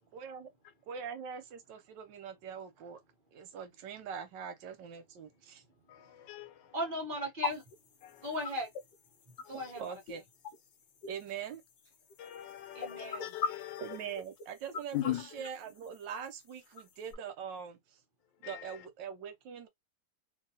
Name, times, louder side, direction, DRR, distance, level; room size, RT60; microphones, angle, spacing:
voice 1, 0.1-0.5 0.9-3.0 3.3-5.6 9.8-10.2 11.0-11.6 13.8-17.8 18.4-19.7, right 7 dB, 85° right, 1.4 m, -43 dB
voice 2, 5.9-6.7 8.0-8.2 12.2-14.0 14.9-15.4 18.4-18.8, left 14 dB, 90° left, 1.3 m, -39 dB
voice 3, 6.7-7.6 8.2-8.7 9.5-10.2 12.7-13.3, equal, 35° right, 1.0 m, -37 dB
sound 1, 7.4-17.1, left 5 dB, 60° left, 0.7 m, -43 dB
2.8 x 2.8 x 2.8 m
omnidirectional pair, 1.9 m